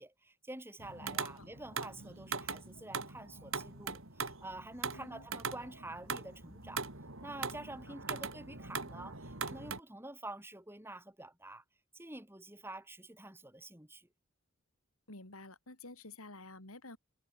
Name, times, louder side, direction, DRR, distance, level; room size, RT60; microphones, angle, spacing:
voice 1, 0.0-6.8 7.2-11.6 11.9-14.1, right 2 dB, 10° right, 4.7 m, -48 dB
sound 1, 0.8-9.8, right 5 dB, 60° right, 4.0 m, -41 dB
voice 2, 1.0-1.5 4.9-5.3 7.9-8.2 15.1-17.0, left 2 dB, 75° left, 4.0 m, -51 dB
head